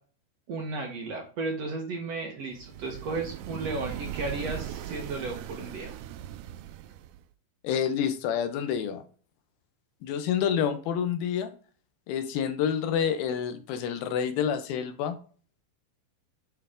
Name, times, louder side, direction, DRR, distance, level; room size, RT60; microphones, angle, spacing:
voice 1, 0.5-6.0, right 3 dB, 60° right, 2 dB, 1.9 m, -34 dB
sound 1, 2.5-7.3, right 12 dB, 90° right, 1.7 m, -39 dB
voice 2, 7.6-9.0 10.0-11.5 12.1-15.2, left 8 dB, 90° left, 8 dB, 2.8 m, -28 dB
10.0 x 3.4 x 3.7 m, 0.40 s
omnidirectional pair, 4.2 m